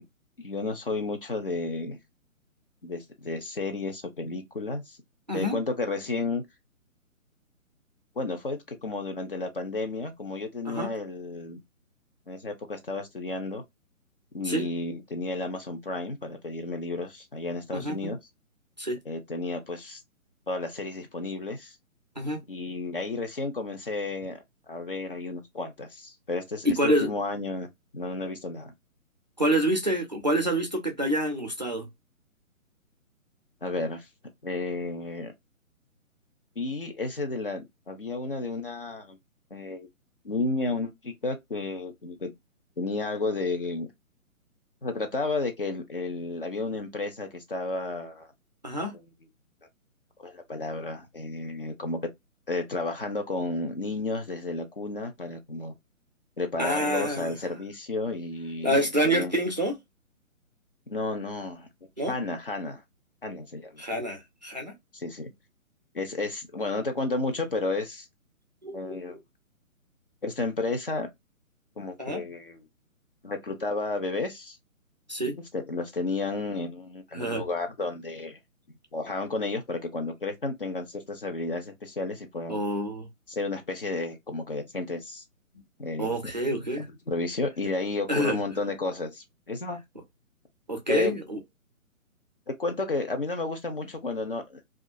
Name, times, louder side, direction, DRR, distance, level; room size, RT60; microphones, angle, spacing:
voice 1, 0.4-2.0 2.8-5.0 5.3-6.4 8.2-11.6 12.3-13.6 14.3-18.2 19.1-20.0 20.5-21.8 22.5-24.4 24.7-27.7 27.9-28.7 33.6-34.1 34.4-35.3 36.6-39.2 39.5-39.9 40.2-42.3 42.8-43.9 44.8-48.3 50.2-52.0 52.5-55.7 56.4-59.3 60.9-61.7 62.1-62.8 63.2-63.8 64.9-65.3 65.9-68.1 68.7-69.2 70.2-71.1 71.8-72.6 73.2-74.6 75.2-78.4 78.9-82.6 83.3-85.2 85.8-86.1 86.5-89.8 90.9-91.2 92.5-94.6, left 3 dB, 40° left, 0.5 m, -32 dB
voice 2, 5.3-5.6 10.7-10.9 14.4-14.7 17.7-18.1 18.8-19.0 22.2-22.4 26.6-27.1 29.4-31.9 48.6-48.9 56.6-57.3 58.6-59.7 62.0-62.1 63.8-64.7 68.6-69.2 72.0-72.3 75.1-75.4 77.1-77.4 82.5-83.1 86.0-86.9 88.1-88.4 90.7-91.4, right 1 dB, 35° right, 0.4 m, -27 dB
2.4 x 2.1 x 2.6 m
figure-of-eight pair, 135°, 42 cm